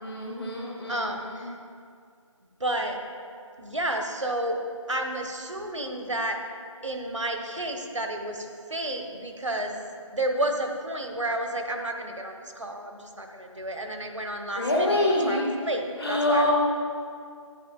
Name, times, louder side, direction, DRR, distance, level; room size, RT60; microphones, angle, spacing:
voice 1, 0.0-1.1 1.4-1.5 14.6-15.5 16.0-16.5, left 1 dB, 45° left, -4 dB, 1.8 m, -25 dB
voice 2, 0.9-1.5 2.6-3.0 3.6-4.6 4.9-6.4 6.8-9.8 10.1-16.5, right 1 dB, 65° right, 3 dB, 1.1 m, -31 dB
11.0 x 9.2 x 2.4 m, 2.3 s
figure-of-eight pair, 170°, 17 cm